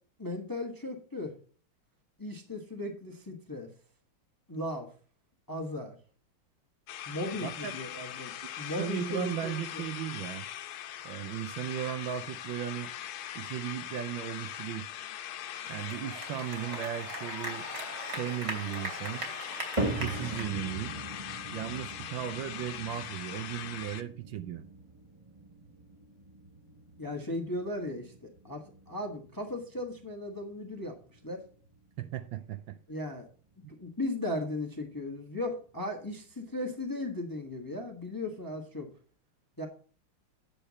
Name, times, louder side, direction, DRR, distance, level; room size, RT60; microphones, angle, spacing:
voice 1, 0.2-1.3 2.2-3.7 4.5-4.9 5.5-6.0 7.1-9.8 27.0-31.4 32.9-33.3 33.8-38.9 39.6-39.7, left 1 dB, 15° left, 1.0 m, -37 dB
sound 1, 6.9-24.0, left 11 dB, 80° left, 1.5 m, -41 dB
voice 2, 7.4-7.7 8.4-10.5 11.0-12.9 13.3-14.9 15.7-17.7 18.1-19.2 19.8-21.0 21.5-24.7 32.0-32.8 33.6-33.7, right 11 dB, 70° right, 1.3 m, -36 dB
sound 2, 15.5-20.4, right 1 dB, 55° right, 3.1 m, -40 dB
sound 3, 19.8-36.1 36.4-36.9 37.5-37.6 38.4-38.5, right 2 dB, 15° right, 1.6 m, -42 dB
8.7 x 6.8 x 4.1 m
omnidirectional pair, 2.3 m